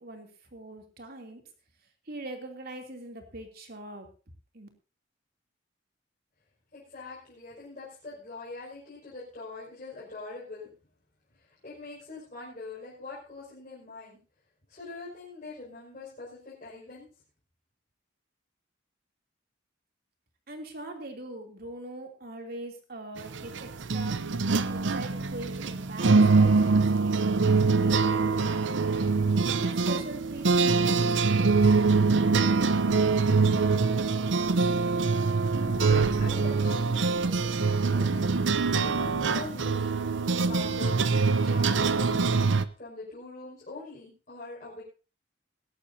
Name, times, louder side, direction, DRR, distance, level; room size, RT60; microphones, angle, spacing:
voice 1, 0.0-1.4 2.1-4.1 4.5-4.7 20.5-24.2 24.7-29.1 29.6-31.7, right 2 dB, 50° right, 3 dB, 2.9 m, -42 dB
voice 2, 6.7-10.7 11.3-14.2 14.7-17.1 35.5-42.4 42.8-44.8, left 3 dB, 40° left, -8 dB, 5.6 m, -43 dB
sound 1, 23.2-42.6, right 4 dB, 70° right, 0.7 m, -24 dB
21.5 x 11.5 x 2.8 m, 0.34 s
head